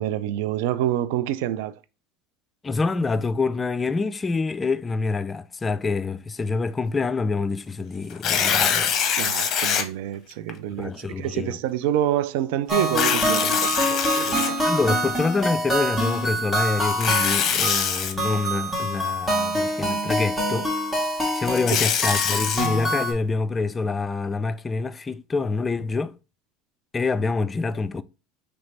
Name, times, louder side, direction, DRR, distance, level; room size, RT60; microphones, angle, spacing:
voice 1, 0.0-1.8 9.2-14.6 21.7-21.8, right 12 dB, 70° right, 0.3 m, -27 dB
voice 2, 2.6-8.9 10.7-11.6 14.6-20.7 21.3-26.1 26.9-28.0, left 4 dB, 20° left, 0.3 m, -26 dB
Tearing, 8.1-9.8 10.5-10.6 12.8-15.0 16.8-18.1 21.3-22.7, left 8 dB, 45° left, 0.8 m, -24 dB
sound 1, 12.7-23.1, equal, 15° right, 1.6 m, -25 dB
3.2 x 3.1 x 4.1 m
supercardioid pair, 100°, 0 cm